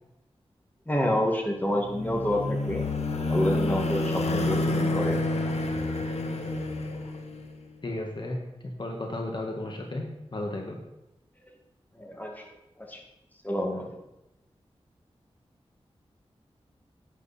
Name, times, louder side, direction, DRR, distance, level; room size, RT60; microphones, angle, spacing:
voice 1, 0.9-2.8 3.3-5.2 12.0-12.4 12.8-13.0 13.4-13.9, left 1 dB, 15° left, 1 dB, 2.0 m, -28 dB
sound 1, 1.7-7.5, left 2 dB, 85° left, 1.2 m, -28 dB
voice 2, 7.8-8.4 8.8-10.8, left 1 dB, 45° left, 2 dB, 1.5 m, -34 dB
11.0 x 9.0 x 4.2 m, 0.92 s
wide cardioid pair, 95°, 11 cm